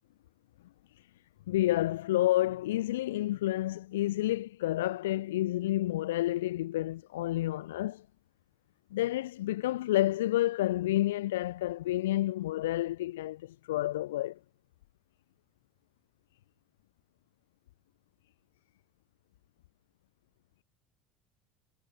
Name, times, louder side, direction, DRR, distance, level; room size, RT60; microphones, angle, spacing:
voice 1, 1.5-8.1 8.9-14.4, left 15 dB, 75° left, 2.3 m, -30 dB
hypercardioid pair, 70°, 0 cm